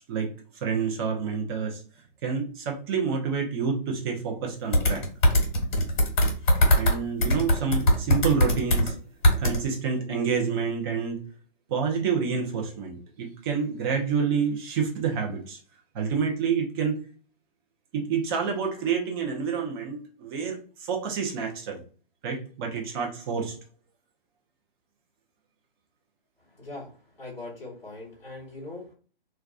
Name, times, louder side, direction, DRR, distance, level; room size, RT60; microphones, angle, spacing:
voice 1, 0.0-1.8 2.2-5.0 6.8-9.0 9.4-11.2 11.7-15.6 15.9-17.0 17.9-21.8 22.2-23.5, right 6 dB, 25° right, 1 dB, 0.5 m, -28 dB
sound 1, 4.7-7.0 7.2-8.9 9.2-9.6, left 1 dB, 55° left, 1.0 m, -20 dB
voice 2, 26.5-26.9 27.2-28.9, left 2 dB, 10° left, -8 dB, 0.9 m, -40 dB
2.4 x 2.2 x 2.3 m, 0.39 s
hypercardioid pair, 135°, 29 cm